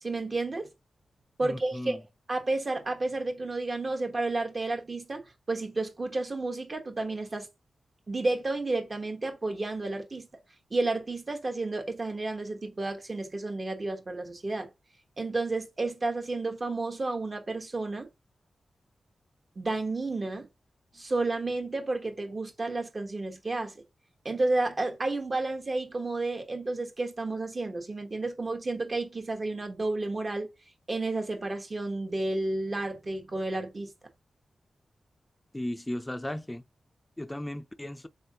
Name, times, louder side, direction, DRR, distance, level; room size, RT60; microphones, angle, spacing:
voice 1, 0.0-0.7 1.4-2.0 2.3-7.5 8.1-10.3 10.7-14.7 15.2-18.1 19.5-20.5 20.9-23.8 24.2-30.5 30.9-33.9, right 2 dB, 40° right, 1.1 m, -31 dB
voice 2, 1.4-2.0 35.5-36.6 37.2-38.1, left 1 dB, 15° left, 0.5 m, -36 dB
3.6 x 3.5 x 2.8 m
cardioid pair, 75°, 0 cm